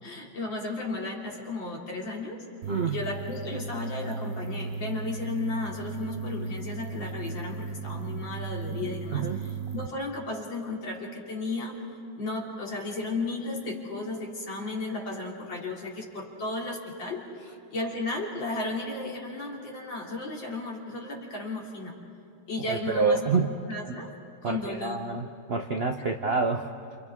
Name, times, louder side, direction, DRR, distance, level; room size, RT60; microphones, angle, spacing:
voice 1, 0.0-2.4 2.9-9.3 9.7-11.8 12.2-17.2 17.7-21.9 22.5-24.1 24.4-25.1 26.0-26.2, left 2 dB, 65° left, -2 dB, 3.6 m, -34 dB
sound 1, 2.6-9.9, right 4 dB, 60° right, 1.1 m, -36 dB
voice 2, 2.7-3.0 9.1-9.4 22.7-23.5 23.9-24.0 24.4-26.7, right 4 dB, 90° right, 4 dB, 0.5 m, -27 dB
29.0 x 28.5 x 3.6 m, 2.5 s
omnidirectional pair, 2.3 m